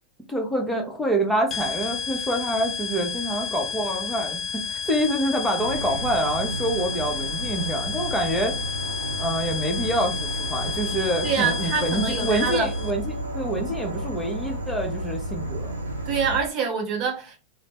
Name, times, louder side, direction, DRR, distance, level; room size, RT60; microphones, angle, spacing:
voice 1, 0.3-8.5 9.2-15.7, right 1 dB, 5° left, 0.8 m, -26 dB
sound 1, 1.5-12.9, left 6 dB, 30° left, 0.3 m, -31 dB
Insect / Frog, 5.6-16.4, right 1 dB, 80° right, 0.7 m, -32 dB
voice 2, 11.2-12.7 16.1-17.4, right 6 dB, 35° right, 0.6 m, -26 dB
3.1 x 2.0 x 2.8 m
figure-of-eight pair, 90°, 0 cm